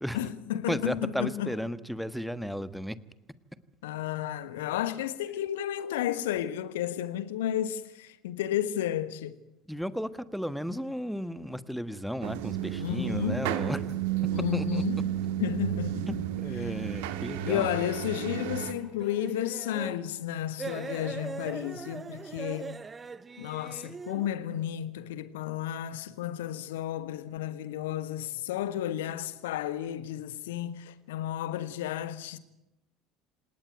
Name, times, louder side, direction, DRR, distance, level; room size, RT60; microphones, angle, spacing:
voice 1, 0.1-1.5 3.8-9.4 12.8-13.5 14.3-15.0 15.4-16.2 17.4-22.8 23.4-32.4, left 11 dB, 65° left, 1.3 m, -32 dB
voice 2, 0.7-3.0 9.7-14.0 14.5-14.8 16.1-16.2 16.4-17.7, equal, ahead, 1.4 m, -34 dB
sound 1, 12.2-18.7, right 12 dB, 60° right, 1.9 m, -32 dB
sound 2, 17.0-19.4 20.9-22.7 24.1-24.6, right 3 dB, 80° right, 8.0 m, -57 dB
sound 3, 17.6-20.1 20.6-24.3, right 5 dB, 25° right, 0.9 m, -41 dB
27.0 x 18.5 x 9.3 m
figure-of-eight pair, 65°, 0 cm